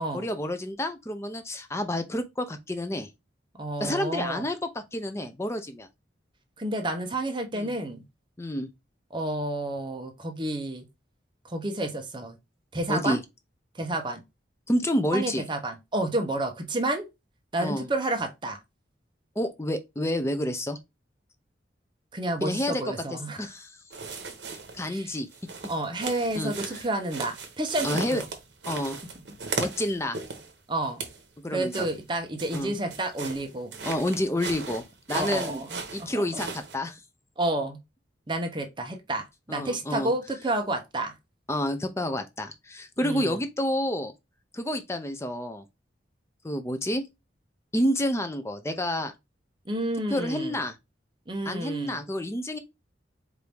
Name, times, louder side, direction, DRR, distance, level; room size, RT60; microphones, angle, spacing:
voice 1, 0.1-3.1 3.8-5.9 7.5-7.7 8.4-8.7 12.9-13.2 14.7-15.4 17.6-17.9 19.4-20.8 22.4-22.8 23.1-23.8 24.7-25.3 26.0-26.8 27.8-28.2 28.7-29.0 29.6-30.2 31.4-31.9 32.5-32.7 33.8-35.6 35.9-37.0 39.5-40.1 41.5-44.1 44.5-45.6 46.4-47.0 47.7-49.1 50.1-50.8 51.5-52.6, left 1 dB, 15° left, 0.5 m, -29 dB
voice 2, 3.6-4.4 6.6-8.0 9.1-10.9 11.4-12.4 12.7-13.2 13.7-14.2 15.1-17.1 17.5-18.6 22.1-23.5 24.9-25.1 25.7-28.2 30.7-31.0 31.5-33.8 35.1-36.2 37.4-37.8 38.3-41.1 43.0-43.4 49.7-50.6 51.3-52.0, right 1 dB, 25° right, 0.8 m, -30 dB
sound 1, 23.9-24.9 25.3-30.5 30.8-31.2 31.7-36.8, right 4 dB, 75° right, 1.0 m, -37 dB
4.6 x 2.7 x 3.4 m
head